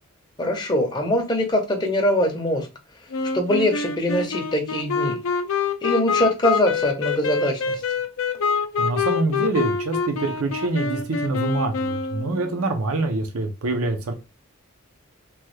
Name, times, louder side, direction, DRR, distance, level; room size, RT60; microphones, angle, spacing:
voice 1, 0.4-2.7 3.3-5.2 5.8-7.8, left 1 dB, 20° left, 2 dB, 0.6 m, -22 dB
Wind instrument woodwind instrument, 3.1-12.6, left 5 dB, 70° left, 0.4 m, -26 dB
voice 2, 8.8-14.1, right 2 dB, 80° right, 6 dB, 0.6 m, -25 dB
3.0 x 2.2 x 3.1 m, 0.27 s
head